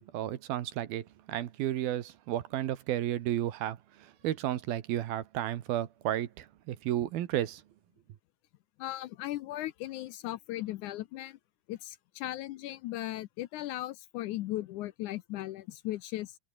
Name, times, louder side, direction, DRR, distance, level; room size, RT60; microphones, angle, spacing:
voice 1, 0.0-7.6, right 12 dB, 85° right, 3.3 m, -33 dB
voice 2, 8.8-11.4 11.7-16.4, left 15 dB, 80° left, 1.8 m, -37 dB
omnidirectional pair, 4.2 m